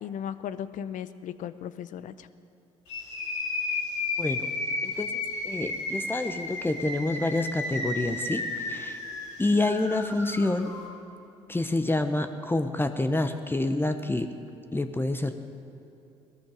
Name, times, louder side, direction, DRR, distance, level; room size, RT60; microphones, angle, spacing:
voice 1, 0.0-2.3, left 9 dB, 60° left, 14 dB, 0.6 m, -36 dB
sound 1, 2.9-10.8, left 2 dB, 80° left, 3.1 m, -33 dB
voice 2, 4.8-9.0 9.4-10.7 11.5-14.3 14.7-15.3, left 2 dB, 15° left, 8 dB, 0.9 m, -28 dB
18.0 x 13.5 x 5.1 m, 2.8 s
hypercardioid pair, 55°, 15 cm